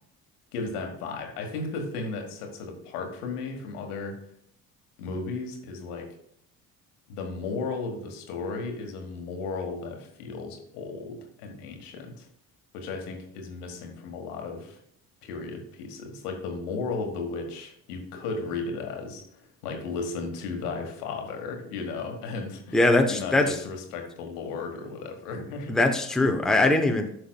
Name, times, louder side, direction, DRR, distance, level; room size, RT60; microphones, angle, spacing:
voice 1, 0.5-4.2 5.0-6.2 7.1-12.3 12.7-14.8 15.2-22.8 23.1-25.8, left 4 dB, 75° left, 3 dB, 1.5 m, -35 dB
voice 2, 22.7-23.5 25.7-27.1, left 2 dB, ahead, 4 dB, 0.8 m, -21 dB
12.5 x 5.6 x 2.3 m, 0.69 s
figure-of-eight pair, 55°, 46 cm